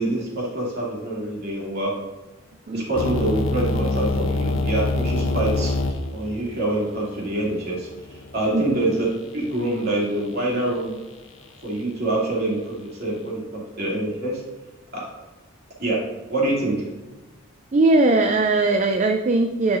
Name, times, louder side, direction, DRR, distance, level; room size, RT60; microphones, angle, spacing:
voice 1, 0.0-1.9 2.7-5.7 6.1-7.9 8.3-9.1 9.3-11.0 11.6-13.4 13.8-14.4 14.9-15.1 15.8-16.0 16.3-16.8, right 1 dB, 50° right, -5 dB, 2.7 m, -25 dB
sound 1, 2.9-8.9, left 2 dB, 65° left, 0.8 m, -26 dB
voice 2, 17.7-19.8, right 2 dB, 35° right, 5 dB, 0.4 m, -19 dB
10.5 x 5.8 x 2.6 m, 1.1 s
head